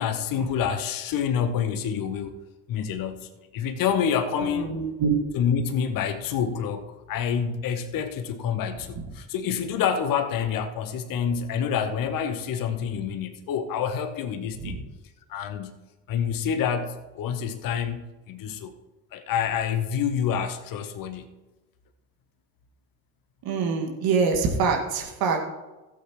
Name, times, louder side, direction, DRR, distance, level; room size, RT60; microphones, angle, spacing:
voice 1, 0.0-2.4 2.7-4.7 5.3-14.9 15.3-15.8 16.1-18.7 19.1-21.4, left 7 dB, 45° left, 9 dB, 1.1 m, -27 dB
voice 2, 4.4-5.2 14.6-14.8 23.4-25.4, right 5 dB, 50° right, 2 dB, 2.1 m, -25 dB
16.5 x 8.4 x 3.1 m, 1.1 s
figure-of-eight pair, 50°, 46 cm